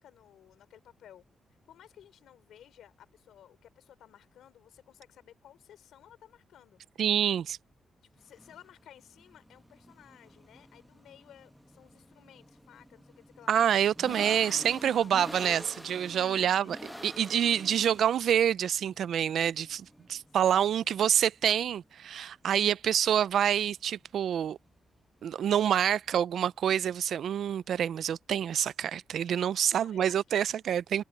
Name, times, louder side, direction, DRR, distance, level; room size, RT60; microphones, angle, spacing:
voice 1, 0.0-6.8 8.0-13.6 14.1-15.1 16.2-16.7 20.3-20.4 20.8-21.3 29.7-30.5, left 10 dB, 90° left, 3.6 m, -56 dB
voice 2, 7.0-7.6 13.5-16.7 17.0-24.6 25.2-31.0, right 9 dB, 70° right, 0.4 m, -27 dB
sound 1, 8.2-26.1, equal, ahead, 0.9 m, -48 dB
cardioid pair, 125°, 0 cm